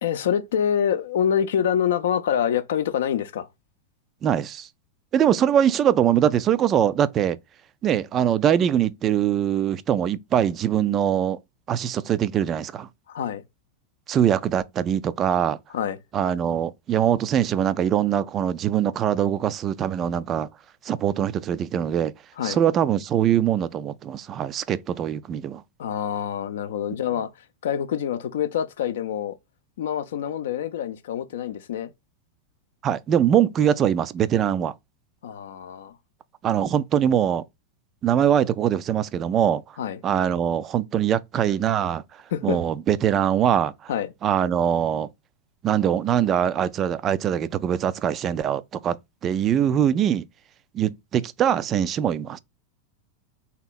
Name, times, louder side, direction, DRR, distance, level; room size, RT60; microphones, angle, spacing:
voice 1, 0.0-3.5 13.1-13.4 15.7-16.0 22.4-22.6 25.8-27.3 27.6-29.4 29.8-31.9 35.2-35.9 39.8-40.0 42.3-42.6 43.9-44.1, left 9 dB, 60° left, 0.5 m, -26 dB
voice 2, 4.2-4.7 5.1-7.4 7.8-11.4 11.7-12.9 14.1-15.6 16.1-20.5 20.8-22.1 22.4-25.6 32.8-34.7 36.4-37.4 38.0-39.6 40.0-42.0 42.4-43.9 44.2-45.1 45.6-49.0 49.2-50.3 50.7-52.4, right 9 dB, 30° right, 0.3 m, -22 dB
3.6 x 2.9 x 4.0 m
figure-of-eight pair, 90°, 0 cm